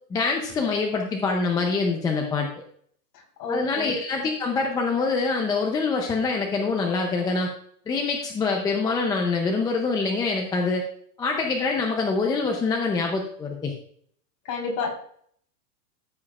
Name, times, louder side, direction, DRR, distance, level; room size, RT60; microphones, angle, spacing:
voice 1, 0.1-2.5 3.5-7.5 7.9-10.9 11.2-13.7, left 4 dB, 10° left, 1 dB, 0.5 m, -25 dB
voice 2, 3.4-3.9 14.4-14.9, left 4 dB, 35° left, 0 dB, 4.0 m, -29 dB
14.0 x 7.5 x 2.4 m, 0.62 s
hypercardioid pair, 140°, 50 cm